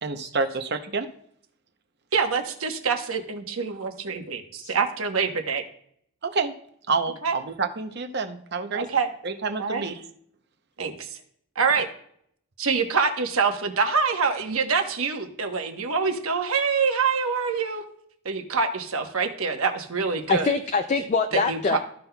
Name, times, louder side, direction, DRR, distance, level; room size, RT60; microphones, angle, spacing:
voice 1, 0.0-1.1 6.2-6.5 6.9-8.9 9.2-10.0, right 4 dB, 50° right, 8 dB, 0.7 m, -28 dB
voice 2, 2.1-5.6 7.2-7.4 8.7-9.1 9.6-9.8 10.8-11.1 11.6-11.9 12.6-17.8 18.2-20.5 21.5-21.8, right 5 dB, 70° right, 5 dB, 1.1 m, -25 dB
voice 3, 20.3-21.8, left 4 dB, 35° left, 7 dB, 0.3 m, -24 dB
14.0 x 5.7 x 2.3 m, 0.65 s
head